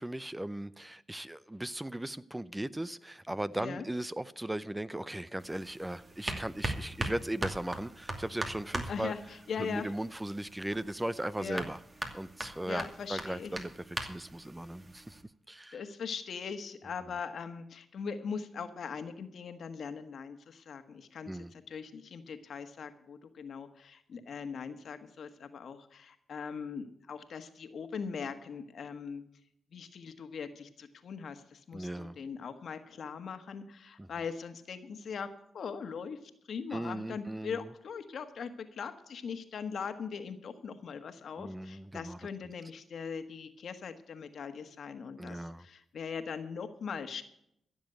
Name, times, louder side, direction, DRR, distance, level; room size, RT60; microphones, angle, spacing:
voice 1, 0.0-9.1 9.6-11.8 12.1-12.8 13.1-15.2 15.5-15.8 21.3-21.5 31.7-32.2 34.0-34.1 36.7-37.7 41.4-42.2 45.2-45.7, right 1 dB, 15° right, 0.6 m, -37 dB
sound 1, 5.4-15.2, right 2 dB, 35° right, 2.5 m, -41 dB
voice 2, 8.9-9.9 11.4-11.6 12.7-13.5 15.7-29.2 29.7-35.3 35.5-47.2, left 6 dB, 70° left, 1.4 m, -40 dB
15.0 x 7.2 x 8.0 m
supercardioid pair, 55°, 0 cm